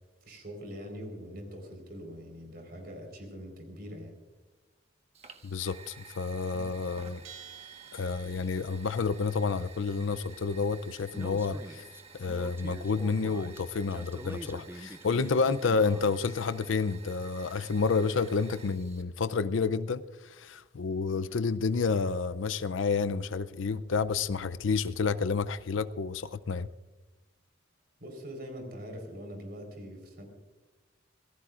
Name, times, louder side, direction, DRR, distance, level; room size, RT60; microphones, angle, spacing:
voice 1, 0.2-4.2 6.5-6.7 28.0-30.2, equal, 55° right, 4 dB, 4.4 m, -43 dB
Fire, 5.1-19.0, right 5 dB, 35° right, 1.3 m, -52 dB
voice 2, 5.4-7.2 7.9-11.8 12.2-26.7, left 4 dB, 85° left, 14 dB, 0.5 m, -30 dB
Bell, 7.2-8.8, right 9 dB, 90° right, 2.5 m, -50 dB
Speech, 11.1-16.3, right 1 dB, 10° right, 0.4 m, -45 dB
26.0 x 18.0 x 2.5 m, 1.2 s
head